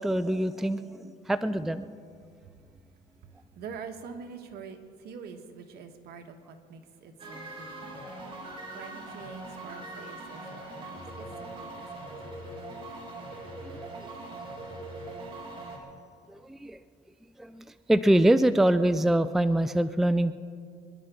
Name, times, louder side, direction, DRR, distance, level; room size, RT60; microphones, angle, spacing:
voice 1, 0.0-1.9 13.7-13.8 16.3-16.8 17.4-20.3, right 1 dB, ahead, 12 dB, 0.4 m, -24 dB
voice 2, 3.2-8.0 8.7-12.3, right 6 dB, 70° right, 5 dB, 1.5 m, -45 dB
sound 1, 7.2-15.8, right 2 dB, 30° right, 3.2 m, -41 dB
25.5 x 11.0 x 3.8 m, 2.2 s
cardioid pair, 110°, 17 cm